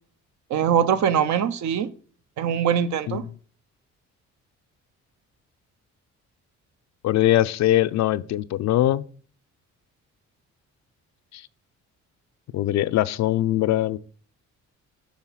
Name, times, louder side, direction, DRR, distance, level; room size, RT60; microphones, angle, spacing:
voice 1, 0.5-1.9 2.4-3.2, right 8 dB, 70° right, 0.7 m, -22 dB
voice 2, 7.0-9.0 12.5-14.0, left 14 dB, 65° left, 0.4 m, -21 dB
6.3 x 3.5 x 5.7 m
cardioid pair, 90°, 30 cm